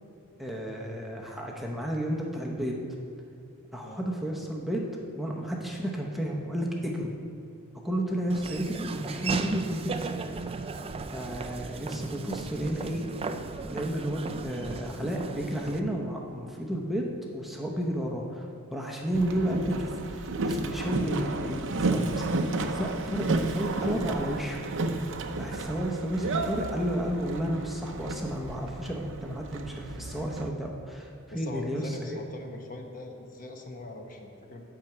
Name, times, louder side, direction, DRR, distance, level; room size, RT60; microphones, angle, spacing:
voice 1, 0.4-2.8 3.7-4.9 5.2-7.1 7.8-10.2 11.1-13.0 13.7-24.6 25.0-25.1 25.4-31.1 31.3-32.2, right 1 dB, ahead, -1 dB, 0.7 m, -32 dB
Laughter / Walk footsteps, 8.3-15.8, right 4 dB, 25° right, 0.4 m, -36 dB
Boat Water vehicle, 19.1-30.5, right 2 dB, 60° right, 0.7 m, -32 dB
voice 2, 31.3-34.6, left 2 dB, 40° left, 3 dB, 1.0 m, -41 dB
9.0 x 5.9 x 7.8 m, 2.5 s
head